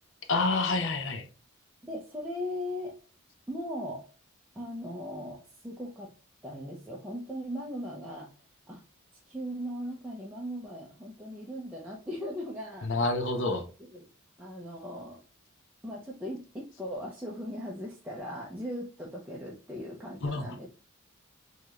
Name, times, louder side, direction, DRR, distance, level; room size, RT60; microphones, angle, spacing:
voice 1, 0.3-1.3 12.8-13.7 20.2-20.5, left 3 dB, 60° left, 0.7 m, -28 dB
voice 2, 1.8-3.0 3.5-4.0 4.5-6.1 6.4-8.3 8.7-8.8 9.3-12.9 13.9-14.0 14.4-15.2 15.8-20.7, equal, 10° right, 0.6 m, -38 dB
4.7 x 2.9 x 2.4 m
head